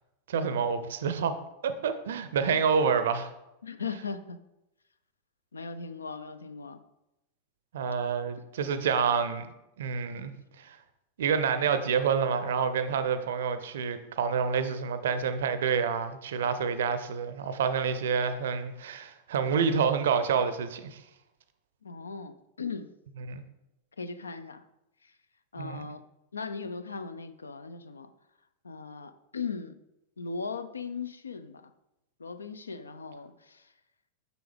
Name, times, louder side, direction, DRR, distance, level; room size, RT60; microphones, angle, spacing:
voice 1, 0.3-1.4 1.6-3.3 7.7-9.5 9.8-10.8 11.2-21.0 23.3-23.4 25.6-25.9, right 6 dB, 60° right, 11 dB, 0.5 m, -28 dB
voice 2, 3.6-4.4 5.5-6.8 21.8-22.9 24.0-24.6 25.0-25.1 25.5-26.0 26.3-28.1 28.6-29.8 30.2-31.7 32.2-33.7, left 5 dB, 75° left, 12 dB, 0.4 m, -38 dB
6.8 x 6.1 x 3.5 m, 0.91 s
figure-of-eight pair, 90°, 0 cm